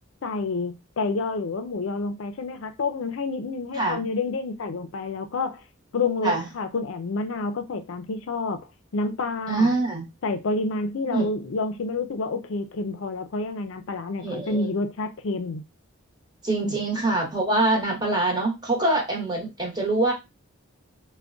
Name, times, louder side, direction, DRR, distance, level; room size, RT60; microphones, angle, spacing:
voice 1, 0.2-5.6 5.9-8.6 8.9-9.7 10.2-15.6 16.6-16.8, left 3 dB, 70° left, 0.5 m, -29 dB
voice 2, 9.5-10.0 11.1-11.3 14.2-14.7 16.4-20.1, right 2 dB, 20° right, 0.9 m, -24 dB
3.4 x 2.2 x 2.5 m
head